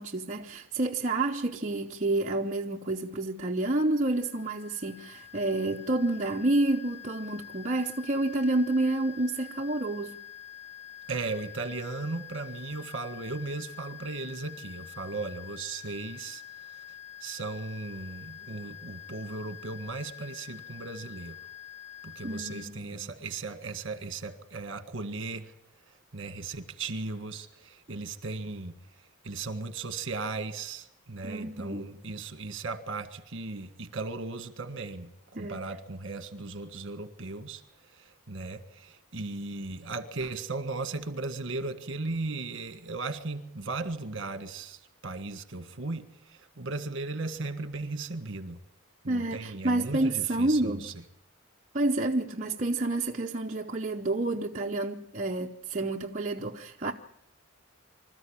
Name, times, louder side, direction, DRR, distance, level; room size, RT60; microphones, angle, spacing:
voice 1, 0.0-10.2 22.2-23.1 31.2-31.9 35.3-35.6 49.1-50.9 51.7-56.9, right 2 dB, 35° right, 0.7 m, -29 dB
sound 1, 3.6-22.7, left 12 dB, 65° left, 4.7 m, -47 dB
voice 2, 11.1-16.4 16.7-16.8 17.2-21.4 22.0-25.5 25.9-28.7 29.2-48.6 49.0-50.9, right 3 dB, 60° right, 1.5 m, -37 dB
25.0 x 13.5 x 8.8 m
head